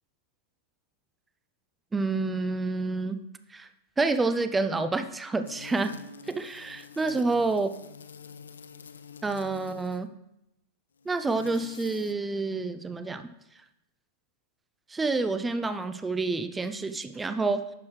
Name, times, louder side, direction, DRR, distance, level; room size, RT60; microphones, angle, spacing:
voice 1, 1.9-3.2 3.5-3.7 4.0-5.9 6.3-7.7 9.2-10.1 11.1-13.3 14.9-17.6, right 3 dB, 10° right, 10 dB, 0.5 m, -28 dB
sound 1, 5.4-10.1 11.0-12.1, left 7 dB, 70° left, 0.4 m, -46 dB
10.5 x 7.0 x 3.2 m, 0.86 s
figure-of-eight pair, 90°, 0 cm